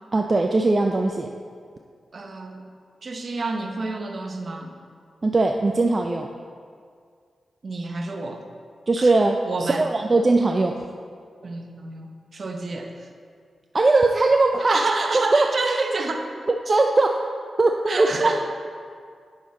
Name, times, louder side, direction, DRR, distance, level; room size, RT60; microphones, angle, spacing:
voice 1, 0.1-1.3 5.2-6.3 8.9-10.8 13.7-14.9 15.3-15.5 16.5-17.2 17.6-18.3, right 2 dB, 40° right, 3 dB, 0.5 m, -20 dB
voice 2, 2.1-2.6 3.0-4.7 7.6-8.4 9.0-9.1 9.4-9.9 11.4-12.9 14.6-16.3 17.9-18.4, right 3 dB, 55° right, 4 dB, 0.9 m, -28 dB
8.8 x 6.2 x 4.1 m, 2.1 s
cardioid pair, 50°, 0 cm